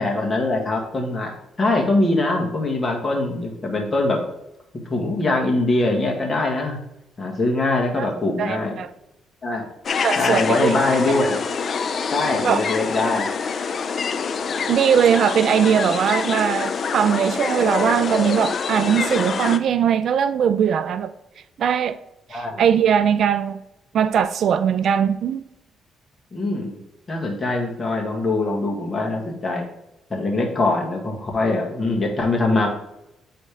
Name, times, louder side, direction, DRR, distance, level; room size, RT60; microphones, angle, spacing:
voice 1, 0.0-1.3 1.6-4.2 4.9-6.8 7.2-8.8 9.4-9.7 10.2-11.4 12.1-13.3 22.3-22.6 26.3-26.8 27.1-29.7 30.1-32.7, left 2 dB, 30° left, 1.7 m, -22 dB
voice 2, 8.4-8.9 10.0-10.7 11.1-11.2 12.4-12.6 14.7-21.1 21.6-22.0 22.3-23.6 23.9-25.4, right 8 dB, 65° right, 0.3 m, -20 dB
sound 1, 9.8-19.6, left 5 dB, 50° left, 0.4 m, -26 dB
8.3 x 4.2 x 3.5 m
cardioid pair, 90°, 0 cm